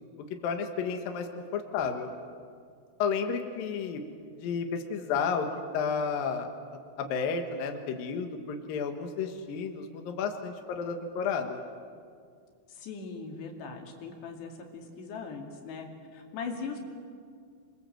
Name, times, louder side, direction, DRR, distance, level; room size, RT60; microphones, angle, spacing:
voice 1, 0.4-2.1 3.0-4.0 4.4-5.5 5.7-6.5 7.0-11.6, left 6 dB, 65° left, 5 dB, 2.9 m, -31 dB
voice 2, 12.7-15.9 16.1-16.8, left 5 dB, 85° left, 2 dB, 4.6 m, -40 dB
27.5 x 23.0 x 7.8 m, 2.2 s
omnidirectional pair, 4.8 m